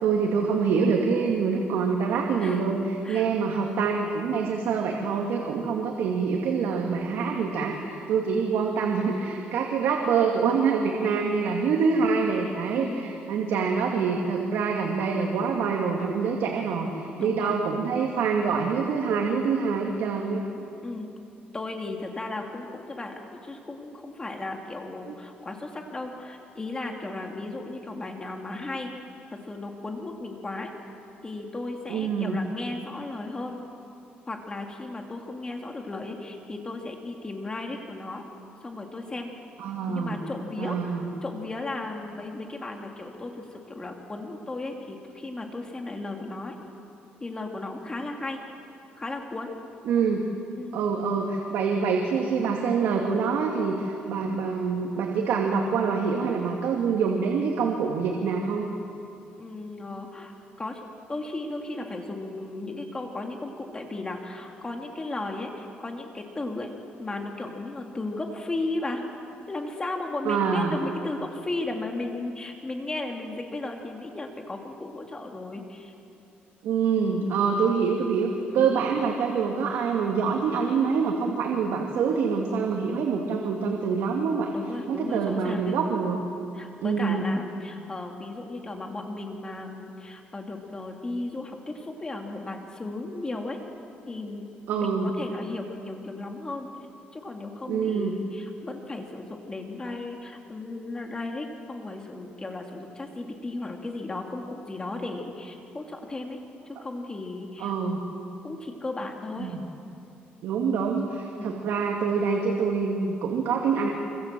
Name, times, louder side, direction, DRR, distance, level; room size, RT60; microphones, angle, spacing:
voice 1, 0.0-20.4 25.1-25.2 31.9-32.4 39.6-40.2 40.6-41.1 49.9-50.2 50.7-58.7 70.3-70.7 76.6-84.5 84.9-86.2 86.8-87.3 94.7-95.1 97.7-98.1 107.6-108.0 109.4-109.6 110.4-113.9, right 5 dB, 85° right, 1 dB, 2.5 m, -25 dB
voice 2, 12.8-13.1 17.2-17.6 20.8-21.1 21.5-28.9 29.3-30.7 31.2-33.6 34.3-38.2 38.6-39.3 39.9-46.6 47.2-48.4 49.0-49.5 50.6-50.8 59.4-66.7 67.0-69.0 69.5-75.9 78.5-78.8 84.5-85.8 86.5-93.6 94.1-94.4 94.7-96.7 97.1-106.4 106.7-107.7 108.4-109.6 111.3-111.6, left 2 dB, 20° left, 2 dB, 2.9 m, -35 dB
26.5 x 26.0 x 7.7 m, 2.7 s
cardioid pair, 130°, 4 cm